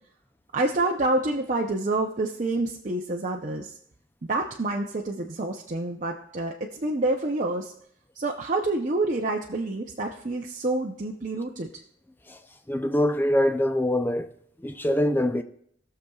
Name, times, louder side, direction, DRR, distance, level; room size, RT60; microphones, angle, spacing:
voice 1, 0.5-3.7 4.3-7.7 8.2-11.7, right 2 dB, 40° right, 0.6 m, -27 dB
voice 2, 12.7-14.3 14.6-15.4, left 1 dB, 10° left, 0.4 m, -24 dB
19.0 x 6.8 x 2.3 m
head